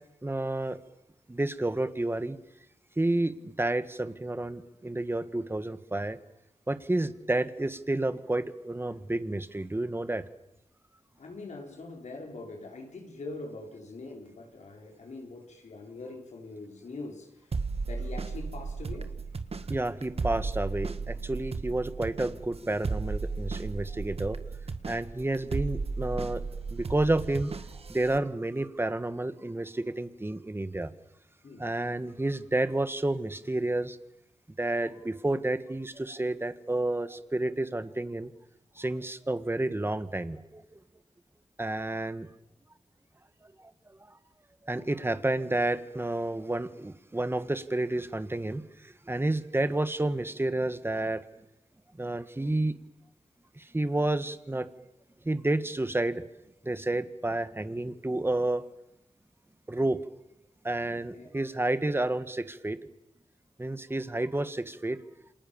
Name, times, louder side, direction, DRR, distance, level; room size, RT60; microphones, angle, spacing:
voice 1, 0.2-0.8 1.3-2.4 3.0-6.2 6.7-10.2 19.7-24.4 24.8-26.4 26.7-27.5 27.9-30.9 31.6-34.0 34.6-38.3 38.7-40.6 41.6-42.3 44.0-44.1 44.6-51.2 52.0-52.8 53.6-54.7 55.2-56.2 56.6-58.7 59.7-60.0 60.6-62.8 63.6-65.0, right 2 dB, 20° right, 11 dB, 1.7 m, -30 dB
voice 2, 11.2-17.5 17.9-19.1 31.4-31.7 44.7-44.9 60.9-61.4, left 2 dB, 85° left, 2 dB, 5.7 m, -43 dB
sound 1, 17.5-28.2, right 4 dB, 60° right, 1.6 m, -35 dB
28.5 x 27.0 x 7.3 m, 0.86 s
wide cardioid pair, 80°, 12 cm